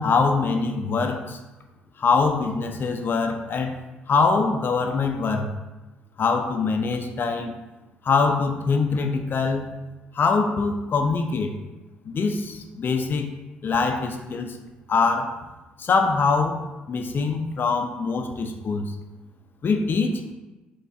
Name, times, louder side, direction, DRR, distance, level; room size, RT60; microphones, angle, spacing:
voice 1, 0.0-1.4 2.0-3.8 4.1-5.5 6.2-7.6 8.0-9.8 10.1-11.5 12.1-13.3 13.6-14.6 14.9-15.4 15.8-18.9 19.6-20.2, left 4 dB, 45° left, 5 dB, 0.5 m, -23 dB
4.4 x 2.4 x 2.4 m, 1.1 s
hypercardioid pair, 45°, 5 cm